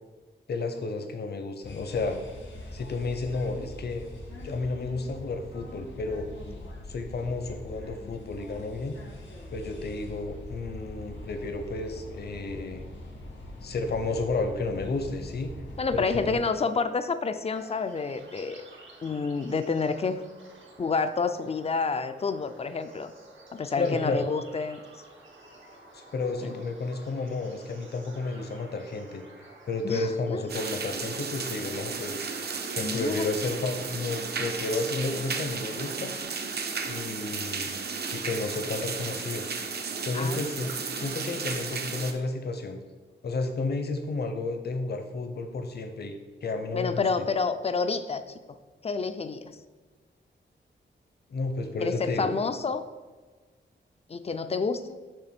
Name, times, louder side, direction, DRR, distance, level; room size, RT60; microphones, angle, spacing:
voice 1, 0.5-2.1 2.7-4.1 4.4-6.3 6.9-9.0 9.5-12.8 13.6-15.5 15.9-16.4 23.8-24.3 25.9-29.2 29.7-36.1 36.9-37.8 38.1-39.4 40.0-40.7 41.0-42.8 43.2-46.1 46.4-47.1 51.3-52.3, left 3 dB, 60° left, 6 dB, 0.8 m, -32 dB
sound 1, 1.6-16.4, left 1 dB, 80° left, 1.8 m, -42 dB
voice 2, 15.8-18.6 19.0-20.2 20.8-23.1 23.5-24.8 26.4-26.5 29.8-30.4 32.8-33.3 40.1-40.7 46.7-48.4 48.8-49.5 51.8-52.9 54.1-54.9, left 4 dB, 35° left, 10 dB, 0.4 m, -29 dB
sound 2, 17.5-36.2, right 2 dB, 85° right, 1.3 m, -52 dB
sound 3, 30.5-42.1, right 5 dB, 55° right, 0.6 m, -34 dB
6.7 x 3.4 x 5.9 m, 1.3 s
wide cardioid pair, 160°, 19 cm